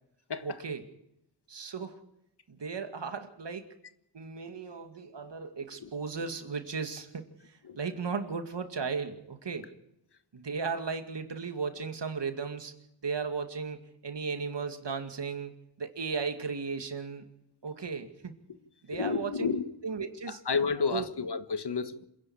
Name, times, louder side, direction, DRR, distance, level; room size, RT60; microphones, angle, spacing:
voice 1, 0.4-0.9 1.5-2.0 2.5-3.7 4.1-9.7 10.3-12.7 13.0-17.3 17.6-18.3 18.8-19.5 19.8-20.4 20.9-21.1, right 5 dB, 70° right, 2.4 m, -36 dB
voice 2, 18.9-19.7 20.3-22.1, left 5 dB, 65° left, 1.5 m, -31 dB
27.0 x 11.0 x 8.9 m
wide cardioid pair, 70°, 44 cm